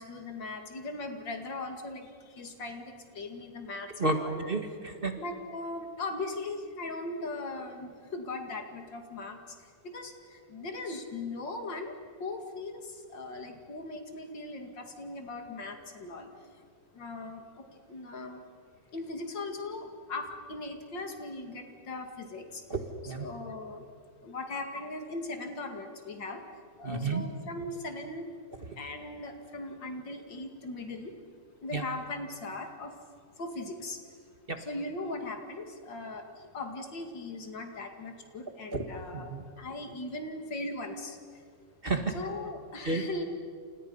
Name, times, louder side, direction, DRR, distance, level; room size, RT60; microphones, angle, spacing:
voice 1, 0.0-4.4 5.2-11.9 12.2-16.3 16.9-18.4 18.9-22.6 23.0-23.9 24.2-26.4 26.8-28.3 28.8-31.2 31.6-33.0 33.4-34.0 34.6-39.3 39.6-41.4 42.1-43.3, left 2 dB, 75° left, 5 dB, 3.0 m, -39 dB
voice 2, 4.0-5.1 22.7-22.8 23.0-23.3 26.8-27.2 31.7-31.8 34.5-34.6 38.7-38.8 39.1-39.4 41.8-42.1 42.8-43.0, right 3 dB, 30° right, 5 dB, 1.7 m, -30 dB
29.0 x 28.5 x 5.6 m, 2.1 s
omnidirectional pair, 2.0 m